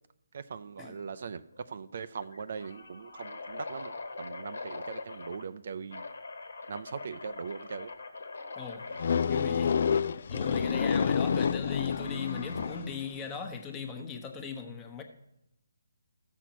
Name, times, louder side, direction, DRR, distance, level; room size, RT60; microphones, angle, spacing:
voice 1, 0.3-6.1 6.7-7.9, right 6 dB, 55° right, 12 dB, 0.5 m, -40 dB
sound 1, 0.9-1.2 1.5-1.6 2.2-5.4 5.9-9.1 10.4-10.8 12.0-12.9, left 3 dB, 75° left, 1.5 m, -43 dB
sound 2, 9.0-13.0, left 6 dB, 50° left, 0.3 m, -28 dB
voice 2, 9.2-9.8 10.3-15.0, left 6 dB, 15° left, 5 dB, 1.1 m, -38 dB
14.0 x 6.4 x 5.9 m, 0.83 s
hypercardioid pair, 160°, 0 cm